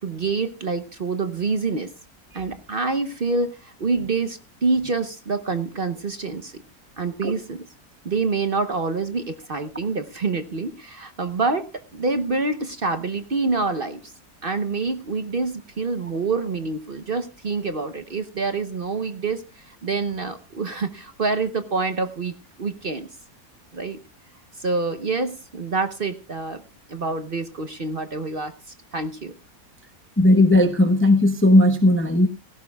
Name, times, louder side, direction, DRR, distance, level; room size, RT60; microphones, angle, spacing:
voice 1, 0.0-1.9 2.3-6.6 7.0-7.6 8.0-14.1 14.4-23.1 23.7-24.0 24.6-26.6 26.9-28.5 28.9-29.3, right 3 dB, 45° right, 9 dB, 1.0 m, -26 dB
voice 2, 30.2-32.3, left 1 dB, 10° left, 8 dB, 0.7 m, -16 dB
17.0 x 15.5 x 2.3 m, 0.29 s
omnidirectional pair, 1.6 m